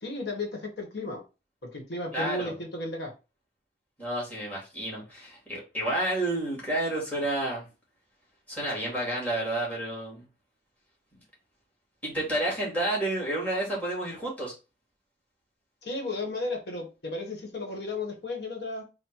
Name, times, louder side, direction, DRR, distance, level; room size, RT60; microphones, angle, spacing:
voice 1, 0.0-1.2 1.6-3.1 15.8-18.8, left 2 dB, 65° left, 1 dB, 1.5 m, -34 dB
voice 2, 2.1-2.5 4.0-7.7 8.5-10.2 12.0-14.5, right 1 dB, 10° left, -4 dB, 2.3 m, -30 dB
4.2 x 2.5 x 4.6 m, 0.29 s
head